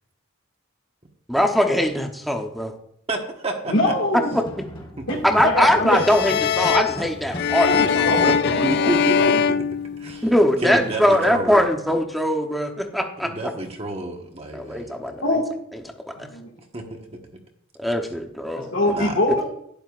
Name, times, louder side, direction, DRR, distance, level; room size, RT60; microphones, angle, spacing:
voice 1, 1.3-2.7 4.3-4.4 5.2-8.4 10.2-13.3 14.5-15.1 17.8-18.7, equal, ahead, 3 dB, 0.9 m, -21 dB
voice 2, 3.1-3.9 5.0-5.1 8.6-9.3 10.0-10.3 10.6-11.7 13.2-15.2 16.7-17.0 18.9-19.1, right 2 dB, 30° right, 2 dB, 1.4 m, -29 dB
voice 3, 3.7-4.4 5.1-6.0 7.5-9.4 15.2-15.4 16.2-16.5 18.6-19.4, left 1 dB, 75° left, -4 dB, 2.1 m, -24 dB
sound 1, 4.3-8.9, equal, 25° left, 1.6 m, -37 dB
sound 2, 5.9-10.5, left 7 dB, 50° left, 0.3 m, -22 dB
11.5 x 10.0 x 2.5 m, 0.73 s
head